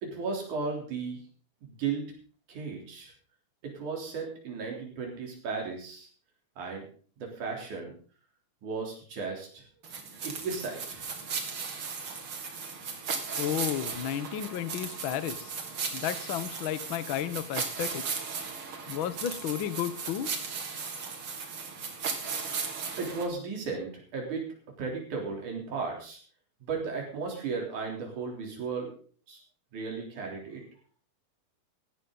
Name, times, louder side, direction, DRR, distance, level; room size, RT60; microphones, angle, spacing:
voice 1, 0.0-1.2 1.6-2.1 2.5-3.1 3.6-6.1 6.6-6.8 7.2-7.9 8.6-9.7 10.2-11.1 23.0-24.5 24.8-26.2 26.6-29.0 29.3-29.4 29.7-30.6, right 4 dB, 80° right, 0 dB, 5.0 m, -35 dB
sound 1, 9.8-23.3, right 5 dB, 45° right, 2.7 m, -36 dB
voice 2, 13.4-15.5 15.9-18.0 18.9-20.3, left 10 dB, 65° left, 13 dB, 1.2 m, -32 dB
16.5 x 13.0 x 4.0 m, 0.43 s
omnidirectional pair, 3.4 m